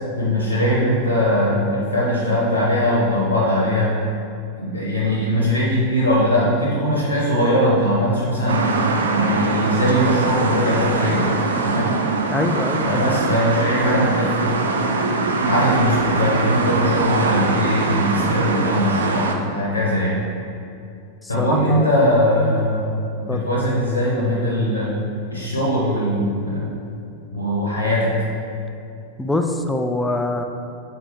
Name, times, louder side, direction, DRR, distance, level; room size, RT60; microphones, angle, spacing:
voice 1, 0.2-4.0 4.6-8.7 9.1-11.3 11.6-11.9 12.8-14.5 15.4-20.2 21.3-24.9 25.3-26.7 27.3-28.2, equal, 75° left, -5 dB, 1.2 m, -20 dB
sound 1, 8.5-19.3, right 3 dB, 70° right, 0.6 m, -22 dB
voice 2, 12.3-13.4 21.2-21.9 23.3-23.4 29.2-30.4, left 2 dB, 10° left, 5 dB, 0.5 m, -24 dB
6.8 x 4.4 x 4.5 m, 2.6 s
figure-of-eight pair, 90°, 0 cm